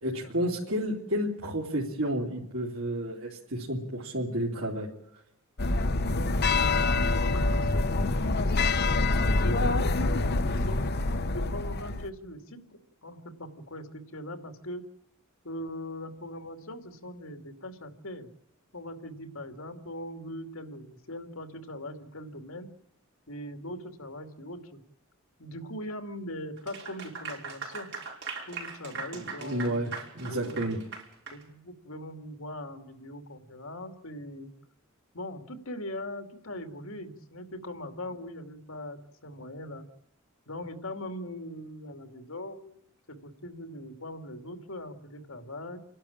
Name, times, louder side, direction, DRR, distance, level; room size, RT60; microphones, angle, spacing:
voice 1, 0.0-4.9 29.1-30.8, right 1 dB, 80° right, -4 dB, 3.2 m, -31 dB
sound 1, 5.6-12.1, left 2 dB, 50° left, 1.0 m, -26 dB
voice 2, 6.1-8.7 9.4-10.8 11.3-14.9 15.4-18.3 18.7-22.7 23.3-24.8 25.4-27.9 28.5-29.9 30.2-30.7 31.3-34.5 35.1-39.9 40.5-45.8, left 1 dB, 75° left, 7 dB, 2.6 m, -41 dB
Clapping / Applause, 26.6-31.4, right 4 dB, 60° right, 5.5 m, -40 dB
29.0 x 12.0 x 8.8 m, 0.80 s
head